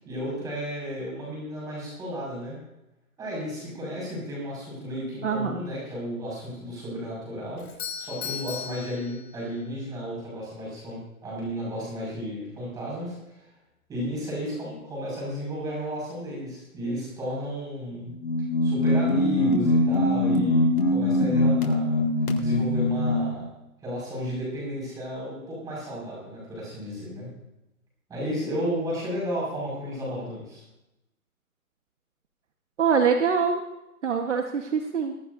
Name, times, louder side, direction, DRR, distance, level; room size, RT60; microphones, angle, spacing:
voice 1, 0.0-2.6 3.2-7.6 7.9-13.5 13.9-18.1 18.6-22.0 22.4-23.5 23.8-27.3 28.1-30.6, equal, 10° right, -4 dB, 5.6 m, -33 dB
voice 2, 5.2-5.6 32.8-33.6 34.0-35.1, right 6 dB, 55° right, 4 dB, 1.4 m, -24 dB
Doorbell, 7.6-9.7, left 7 dB, 45° left, 4.7 m, -37 dB
sound 1, 18.1-23.4, left 1 dB, 90° left, 3.9 m, -22 dB
22.5 x 12.5 x 2.7 m, 0.90 s
hypercardioid pair, 165°, 43 cm